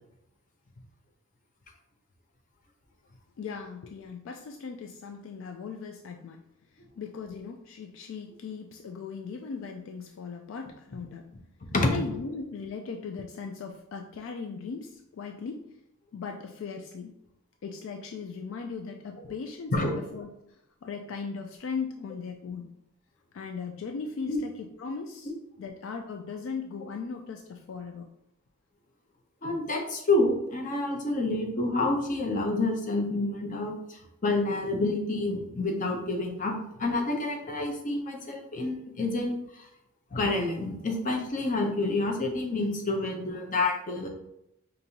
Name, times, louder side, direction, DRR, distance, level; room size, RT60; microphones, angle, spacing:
voice 1, 3.4-6.4 6.7-11.3 11.8-15.7 16.1-17.1 17.6-22.7 23.3-28.1, left 5 dB, 65° left, 4 dB, 0.3 m, -38 dB
voice 2, 29.4-39.6 40.1-44.1, left 2 dB, 40° left, 2 dB, 0.7 m, -28 dB
5.2 x 2.6 x 2.8 m, 0.82 s
head